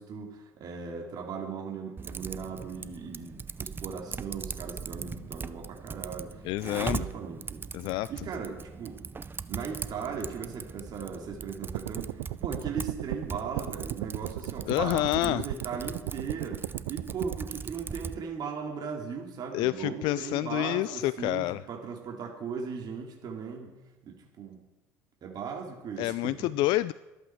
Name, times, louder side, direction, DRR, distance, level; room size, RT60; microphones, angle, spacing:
voice 1, 0.0-7.6 8.1-9.0 9.5-23.8 24.0-24.6 25.2-26.5, right 6 dB, 50° right, 1 dB, 2.8 m, -38 dB
Typing, 2.0-18.2, right 5 dB, 25° right, 0.6 m, -40 dB
voice 2, 6.4-7.1 7.7-8.1 14.7-15.4 19.5-21.6 26.0-26.9, left 16 dB, 65° left, 16 dB, 0.4 m, -28 dB
sound 1, 11.6-17.4, right 19 dB, 80° right, 0.4 m, -36 dB
24.5 x 8.3 x 4.6 m, 1.0 s
hypercardioid pair, 75°, 9 cm